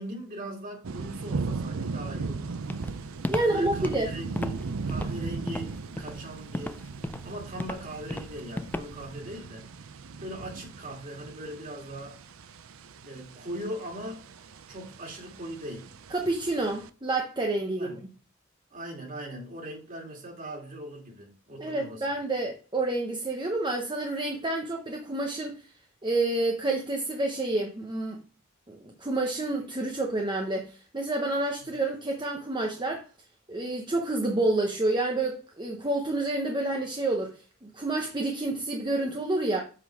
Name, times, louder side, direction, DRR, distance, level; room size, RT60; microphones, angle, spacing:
voice 1, 0.0-2.5 3.4-6.8 7.2-9.6 10.2-12.2 13.0-14.2 14.7-15.9 17.7-18.0 18.7-22.2 31.6-31.7, right 1 dB, 40° right, 2.7 m, -40 dB
sound 1, 0.8-16.9, right 4 dB, 85° right, 0.6 m, -38 dB
Walk footsteps, 2.7-9.2, left 1 dB, 10° left, 0.3 m, -35 dB
voice 2, 3.3-4.1 16.1-17.9 21.6-25.5 26.0-28.2 28.7-33.0 33.5-39.6, right 2 dB, 20° right, 0.8 m, -29 dB
7.6 x 3.9 x 4.8 m
head